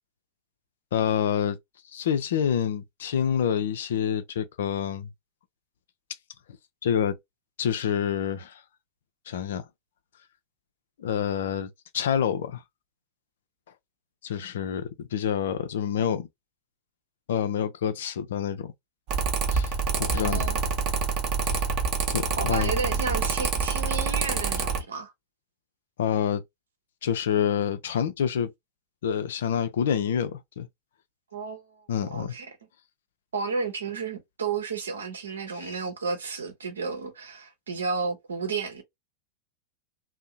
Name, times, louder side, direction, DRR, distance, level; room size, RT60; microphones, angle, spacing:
voice 1, 0.9-1.6 1.9-5.1 6.8-7.2 7.6-8.6 9.3-9.6 11.0-12.6 14.2-16.3 17.3-18.7 19.5-19.7 20.0-20.4 21.4-21.6 22.1-22.7 26.0-26.4 27.0-28.5 29.0-30.7 31.9-32.3 35.6-35.8, left 8 dB, 60° left, 0.4 m, -27 dB
Mechanical fan, 19.1-24.8, right 5 dB, 40° right, 0.8 m, -26 dB
voice 2, 19.9-20.6 22.4-25.1 31.3-32.6 33.3-38.8, right 4 dB, 70° right, 0.8 m, -32 dB
2.7 x 2.0 x 2.4 m
figure-of-eight pair, 90°, 0 cm